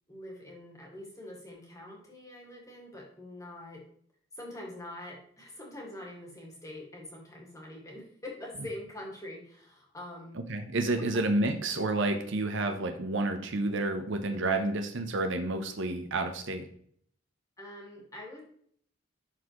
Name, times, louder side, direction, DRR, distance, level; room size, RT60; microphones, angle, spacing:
voice 1, 0.1-3.9 4.3-10.4 11.0-11.2 17.6-18.4, left 1 dB, 15° left, -2 dB, 1.9 m, -44 dB
voice 2, 10.5-16.7, right 2 dB, 65° right, 6 dB, 0.8 m, -30 dB
11.5 x 4.2 x 3.1 m, 0.63 s
head